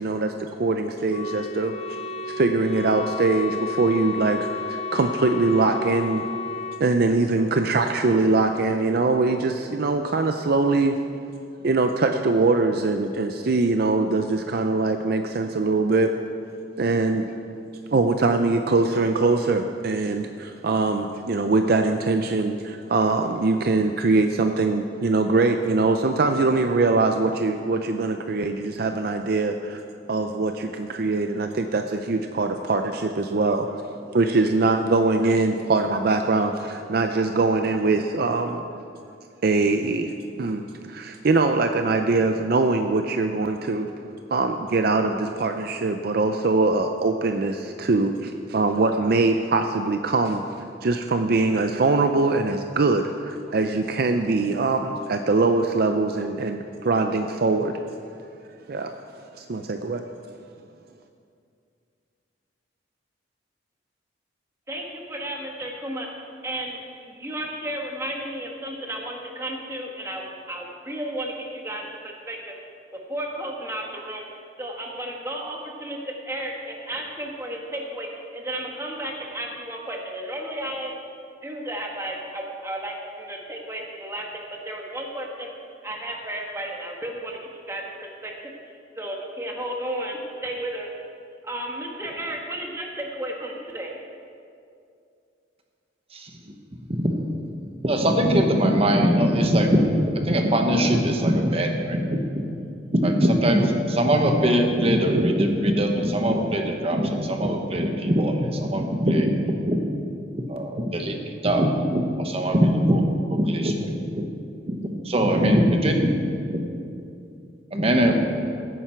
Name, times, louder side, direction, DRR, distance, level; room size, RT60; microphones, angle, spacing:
voice 1, 0.0-1.7 2.3-6.2 6.8-11.0 11.6-16.1 16.8-17.2 17.9-29.8 30.1-38.7 39.4-40.1 40.4-43.9 44.3-50.4 50.8-57.8 58.7-58.9 59.4-60.0, right 3 dB, 55° right, 6 dB, 0.5 m, -22 dB
Wind instrument woodwind instrument, 1.1-6.9, left 3 dB, 35° left, 0.4 m, -32 dB
voice 2, 64.7-72.5 72.9-74.2 74.6-81.0 81.4-85.5 85.8-87.4 87.7-88.5 88.9-90.9 91.4-93.9, right 1 dB, 15° right, -1 dB, 1.5 m, -33 dB
voice 3, 97.8-109.8 110.3-114.3 114.7-116.1 116.5-116.6 117.7-118.1, equal, 30° right, 3 dB, 1.1 m, -22 dB
16.0 x 9.5 x 4.5 m, 2.5 s
head